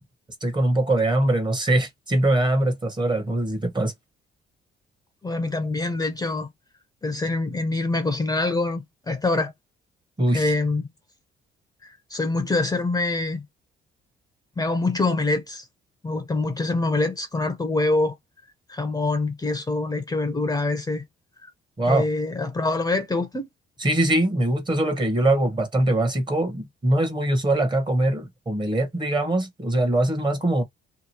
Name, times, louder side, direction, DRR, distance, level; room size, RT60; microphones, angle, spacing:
voice 1, 0.4-3.9 10.2-10.5 21.8-22.1 23.8-30.6, right 1 dB, 25° right, 1.0 m, -22 dB
voice 2, 5.2-6.5 7.0-9.5 10.3-10.9 11.8-13.4 14.6-15.7 16.0-18.1 18.7-21.0 21.4-21.5 21.8-23.5, left 2 dB, 20° left, 0.6 m, -25 dB
2.9 x 2.4 x 2.8 m
cardioid pair, 90°, 20 cm